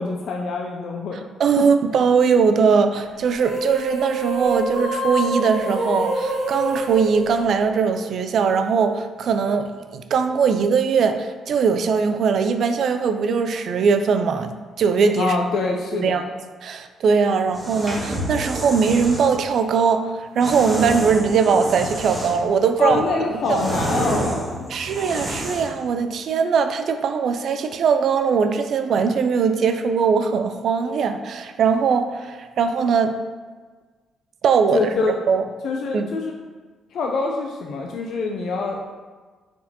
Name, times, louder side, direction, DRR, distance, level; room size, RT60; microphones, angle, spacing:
voice 1, 0.0-1.3 15.2-16.3 22.8-24.6 34.7-35.1 35.6-36.3 36.9-38.8, left 3 dB, 70° left, 1 dB, 0.4 m, -25 dB
voice 2, 1.4-14.5 14.8-15.4 16.0-16.2 16.6-23.0 23.5-23.6 24.7-33.1 34.4-34.8 35.3-35.4 35.9-36.1, right 5 dB, 65° right, 8 dB, 0.3 m, -20 dB
sound 1, 3.3-8.0, right 1 dB, 80° right, 0.9 m, -26 dB
sound 2, 17.5-19.3 20.4-22.5 22.9-25.8, right 1 dB, 20° right, 1.2 m, -29 dB
4.7 x 3.6 x 2.7 m, 1.4 s
cardioid pair, 90°, 0 cm